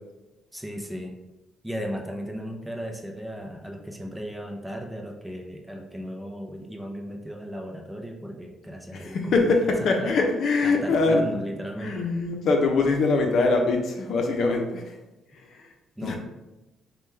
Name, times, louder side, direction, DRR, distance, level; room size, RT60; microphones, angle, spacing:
voice 1, 0.5-1.1 1.6-9.5 10.0-10.2 10.6-12.1 16.0-16.2, equal, 5° right, 2 dB, 0.6 m, -36 dB
voice 2, 8.9-11.3 11.8-14.9 15.4-15.6 16.0-16.2, left 3 dB, 65° left, 2 dB, 0.7 m, -23 dB
5.2 x 2.3 x 3.2 m, 1.0 s
cardioid pair, 90°, 0 cm